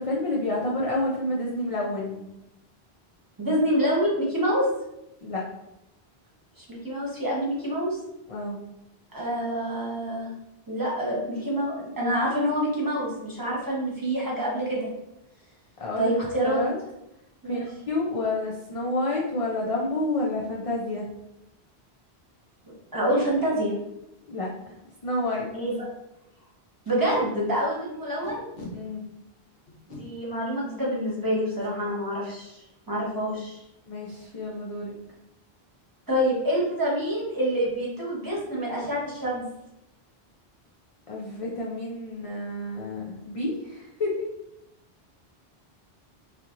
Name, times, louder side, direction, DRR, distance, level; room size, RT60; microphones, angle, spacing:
voice 1, 0.0-2.2 5.2-5.4 8.3-8.6 15.8-16.1 16.4-16.8 17.4-21.0 24.3-24.8 25.0-25.5 28.7-29.0 33.9-34.9 41.1-44.3, left 2 dB, 50° left, -3 dB, 0.4 m, -29 dB
voice 2, 3.4-4.7 6.6-8.0 9.1-10.3 10.7-14.9 16.0-16.6 17.4-17.6 22.9-23.7 25.5-25.8 26.9-28.5 29.9-33.6 36.1-39.4, equal, 20° right, -6 dB, 1.0 m, -27 dB
Packing tape duct tape, 24.3-24.4 24.8-24.9 25.1-25.3 25.7-25.8 26.8-27.2 28.2-28.7 29.7-30.0 31.6-31.7 32.1-32.3 32.5-32.9, left 2 dB, 65° left, 1.1 m, -42 dB
4.2 x 2.8 x 2.5 m, 0.88 s
omnidirectional pair, 1.1 m